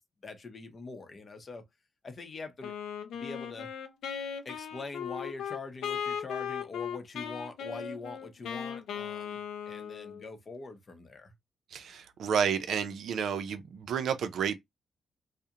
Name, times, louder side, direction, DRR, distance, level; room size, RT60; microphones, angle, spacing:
voice 1, 0.2-1.6 2.0-2.8 3.1-3.7 4.4-9.4 9.7-11.3, left 3 dB, 40° left, 0.6 m, -43 dB
Wind instrument woodwind instrument, 2.6-10.3, left 8 dB, 90° left, 0.4 m, -37 dB
voice 2, 11.7-14.6, right 7 dB, 75° right, 0.4 m, -31 dB
2.4 x 2.0 x 2.7 m
cardioid pair, 100°, 0 cm